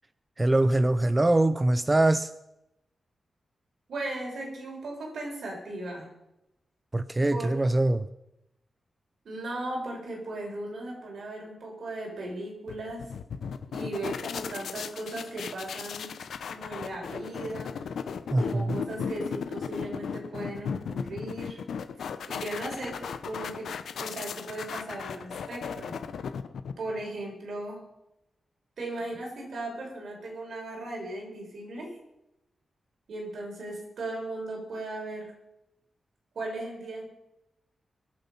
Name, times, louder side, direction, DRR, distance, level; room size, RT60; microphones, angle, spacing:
voice 1, 0.4-2.3 6.9-8.1 18.3-18.8, right 2 dB, 20° right, 13 dB, 0.5 m, -23 dB
voice 2, 3.9-6.1 7.3-7.6 9.2-13.1 13.7-16.2 16.5-17.8 18.4-21.6 22.3-26.0 26.8-27.8 28.8-32.0 33.1-35.3 36.4-37.1, right 2 dB, 70° right, -1 dB, 5.6 m, -37 dB
sound 1, 12.7-27.0, left 6 dB, 90° left, 0.8 m, -36 dB
24.0 x 7.9 x 5.6 m, 0.90 s
wide cardioid pair, 115°, 0 cm